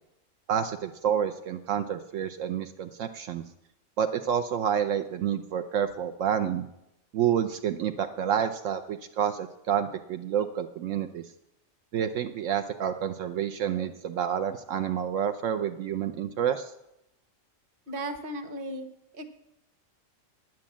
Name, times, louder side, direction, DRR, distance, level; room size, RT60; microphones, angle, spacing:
voice 1, 0.5-3.4 4.0-6.6 7.1-11.2 11.9-16.7, right 9 dB, 75° right, 7 dB, 1.0 m, -29 dB
voice 2, 17.9-18.9 19.1-19.2, right 1 dB, 45° right, 6 dB, 1.3 m, -35 dB
9.8 x 9.2 x 7.3 m, 0.84 s
omnidirectional pair, 1.3 m